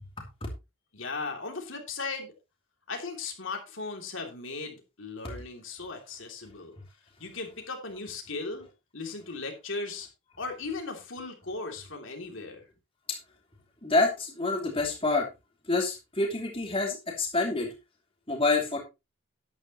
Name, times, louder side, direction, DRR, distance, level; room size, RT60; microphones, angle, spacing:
voice 1, 0.9-2.3 2.9-6.8 7.2-8.7 8.9-10.1 10.4-12.7, left 3 dB, 60° left, 3 dB, 2.9 m, -37 dB
voice 2, 13.8-15.3 15.7-17.7 18.3-18.8, left 3 dB, 25° left, 0 dB, 2.7 m, -27 dB
12.0 x 10.5 x 3.0 m, 0.25 s
head